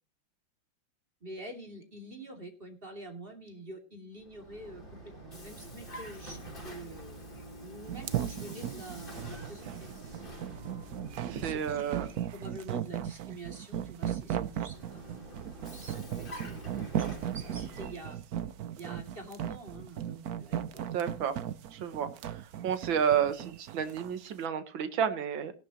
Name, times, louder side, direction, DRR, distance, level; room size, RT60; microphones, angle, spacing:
voice 1, 1.2-6.4 6.6-7.3 7.6-9.9 11.2-15.2 15.7-18.2 18.8-20.9, right 1 dB, 25° right, 4 dB, 2.8 m, -47 dB
Vehicle, 4.1-12.7 14.3-18.2, right 1 dB, 25° left, 3.7 m, -46 dB
sound 1, 7.9-24.1, right 10 dB, 60° right, 1.1 m, -36 dB
voice 2, 11.3-12.1 20.9-21.3 21.7-22.4 22.6-25.5, right 8 dB, 75° right, 10 dB, 2.1 m, -31 dB
17.0 x 12.0 x 3.0 m, 0.31 s
omnidirectional pair, 2.2 m